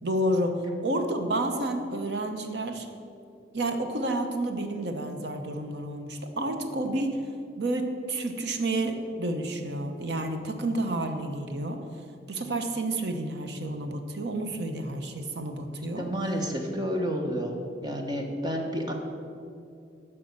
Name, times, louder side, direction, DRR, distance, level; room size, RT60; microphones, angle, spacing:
voice 1, 0.0-2.9 3.5-7.2 7.6-11.9 12.3-16.1, right 1 dB, 65° right, 6 dB, 0.9 m, -30 dB
voice 2, 16.0-18.9, equal, 25° right, 2 dB, 1.0 m, -30 dB
9.5 x 5.8 x 6.5 m, 2.5 s
head